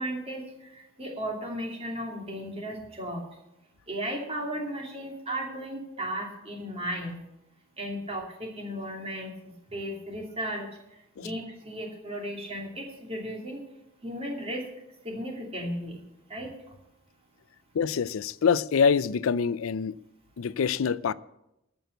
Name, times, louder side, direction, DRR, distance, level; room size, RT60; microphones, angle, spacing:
voice 1, 0.0-3.2 3.9-7.2 7.8-10.7 11.2-13.6 14.0-14.6 15.0-16.0 16.3-16.5, equal, 30° right, 2.7 m, -35 dB
voice 2, 17.7-20.0 20.4-21.1, left 6 dB, 85° left, 0.4 m, -25 dB
13.5 x 6.2 x 7.9 m
head